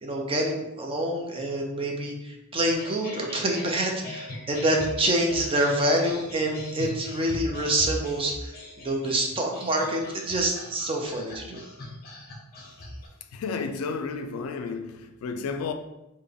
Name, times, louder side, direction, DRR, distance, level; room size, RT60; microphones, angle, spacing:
voice 1, 0.0-11.6, right 1 dB, 25° right, 0.5 m, -27 dB
sound 1, 2.7-13.1, left 1 dB, 45° left, 0.7 m, -40 dB
voice 2, 13.3-15.7, left 4 dB, 75° left, 0.3 m, -32 dB
3.5 x 2.2 x 3.4 m
head